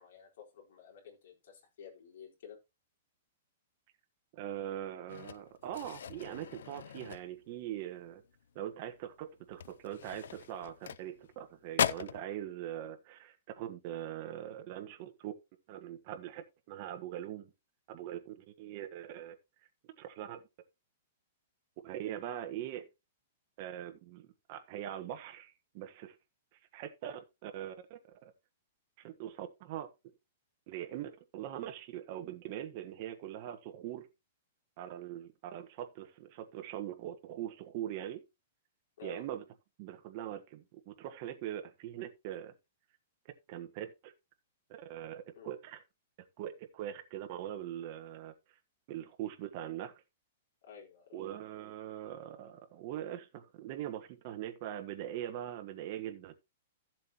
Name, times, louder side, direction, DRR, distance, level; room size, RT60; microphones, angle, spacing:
voice 1, 0.0-2.6 39.0-39.2 45.3-45.5 50.6-51.2, left 8 dB, 60° left, 4.3 m, -52 dB
voice 2, 4.3-8.2 8.5-15.3 15.7-17.5 17.9-19.4 20.0-20.4 21.8-22.9 23.6-26.2 26.7-28.3 29.0-29.9 30.7-34.1 34.8-38.2 39.0-39.4 39.8-42.5 43.5-44.1 44.7-45.8 46.4-48.3 48.9-49.9 51.1-56.3, right 11 dB, 35° right, 1.3 m, -42 dB
sound 1, 5.1-7.7 8.1-8.4 8.7-8.9 9.5-11.4 11.7-12.2, left 8 dB, 80° left, 0.5 m, -38 dB
14.0 x 7.6 x 3.0 m
hypercardioid pair, 170°, 0 cm